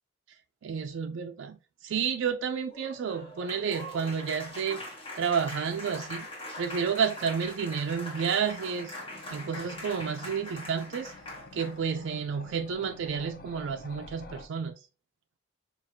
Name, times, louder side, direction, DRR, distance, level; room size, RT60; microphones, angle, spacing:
voice 1, 0.6-1.6 1.8-4.8 5.2-6.3 6.6-9.0 9.3-11.1 11.5-14.8, right 6 dB, 60° right, 0.3 m, -30 dB
Applause, 2.6-11.8, left 1 dB, 25° left, 1.1 m, -42 dB
sound 1, 8.4-14.5, left 3 dB, 45° left, 0.5 m, -49 dB
4.6 x 2.4 x 2.7 m
head